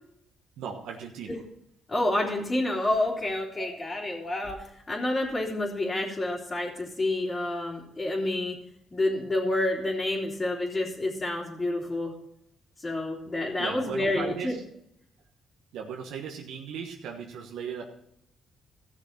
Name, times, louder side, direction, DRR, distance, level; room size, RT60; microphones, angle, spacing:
voice 1, 0.6-1.3 3.6-3.8 13.6-14.6 15.7-17.8, right 7 dB, 85° right, 1 dB, 1.4 m, -37 dB
voice 2, 1.9-8.5 8.9-12.1 12.8-14.5, left 1 dB, 25° left, -5 dB, 3.1 m, -29 dB
14.5 x 6.8 x 5.9 m, 0.76 s
cardioid pair, 90°, 0 cm